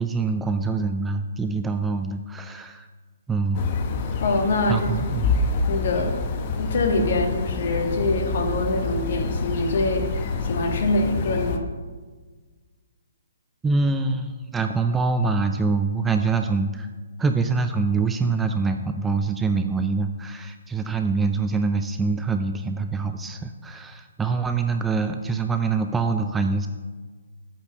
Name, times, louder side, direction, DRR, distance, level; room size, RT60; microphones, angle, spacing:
voice 1, 0.0-2.9 3.3-3.8 4.7-5.3 13.6-16.9 17.2-26.7, right 4 dB, 10° right, 7 dB, 0.4 m, -25 dB
sound 1, 3.5-11.6, left 3 dB, 40° left, 0.9 m, -27 dB
voice 2, 4.2-4.9 5.7-6.2 6.6-11.7, left 2 dB, 55° left, 3 dB, 1.7 m, -24 dB
8.4 x 5.2 x 6.7 m, 1.4 s
figure-of-eight pair, 135°, 0 cm